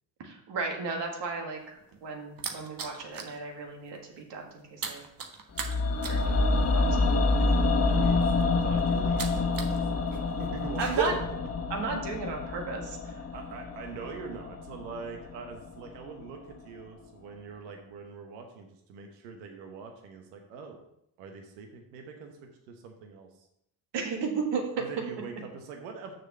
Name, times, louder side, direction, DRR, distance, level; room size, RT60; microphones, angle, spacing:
voice 1, 0.2-5.1 6.1-6.5 6.7-7.1 10.8-11.1 11.7-13.0 23.9-24.9, right 4 dB, 60° right, 2 dB, 1.9 m, -34 dB
sound 1, 1.6-3.4 3.7-4.0 4.2-9.8 10.1-11.0, right 8 dB, 45° right, 1.3 m, -37 dB
sound 2, 5.6-15.7 16.0-16.1, left 3 dB, 30° left, 1.2 m, -27 dB
voice 2, 7.9-11.4 13.1-20.8 21.2-22.4 22.7-23.5 24.8-26.2, right 5 dB, 90° right, 3 dB, 1.2 m, -43 dB
6.5 x 4.4 x 6.6 m, 0.78 s
supercardioid pair, 60°, 47 cm